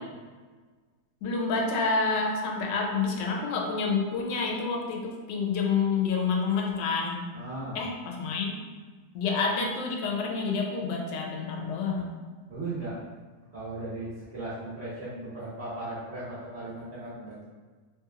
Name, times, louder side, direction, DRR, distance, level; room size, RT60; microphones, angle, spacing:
voice 1, 1.2-7.2 7.7-8.6 9.1-12.2, left 4 dB, 85° left, 1 dB, 1.2 m, -28 dB
voice 2, 7.3-7.8 12.5-12.9 13.5-17.5, right 2 dB, 55° right, -9 dB, 0.8 m, -37 dB
3.2 x 2.8 x 2.3 m, 1.5 s
omnidirectional pair, 1.8 m